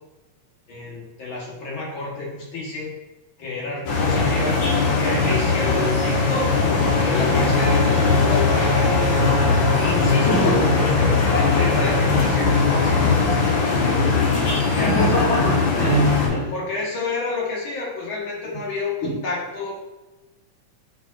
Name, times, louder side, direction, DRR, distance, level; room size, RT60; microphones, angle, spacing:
voice 1, 0.7-2.9 3.4-4.6 5.0-9.1 9.8-15.1 16.5-19.7, left 3 dB, 50° left, -4 dB, 1.8 m, -29 dB
sound 1, 3.9-16.3, left 4 dB, 70° left, 2.5 m, -19 dB
voice 2, 10.3-10.7 14.8-16.5 19.0-19.1, right 1 dB, 30° left, -9 dB, 2.3 m, -22 dB
8.2 x 5.1 x 2.4 m, 1.1 s
omnidirectional pair, 3.4 m